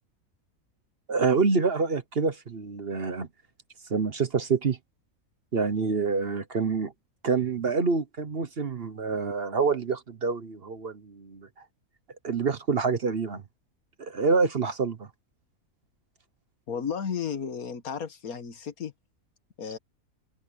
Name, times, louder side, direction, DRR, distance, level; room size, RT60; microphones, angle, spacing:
voice 1, 1.1-3.3 3.9-4.8 5.5-6.9 7.2-11.5 12.2-13.4 14.0-15.1, right 4 dB, 45° right, 1.2 m, -27 dB
voice 2, 16.7-18.9 19.6-19.8, left 7 dB, 70° left, 1.8 m, -33 dB
open air
omnidirectional pair, 1.6 m